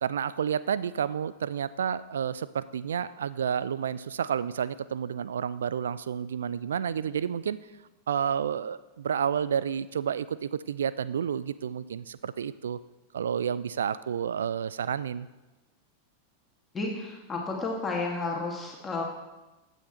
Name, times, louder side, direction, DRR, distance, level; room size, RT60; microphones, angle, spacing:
voice 1, 0.0-7.6 8.1-12.8 13.1-15.3, right 8 dB, 65° right, 16 dB, 0.5 m, -30 dB
voice 2, 16.7-19.0, left 3 dB, 15° left, -1 dB, 2.1 m, -32 dB
15.5 x 9.3 x 4.3 m, 1.1 s
figure-of-eight pair, 90°, 0 cm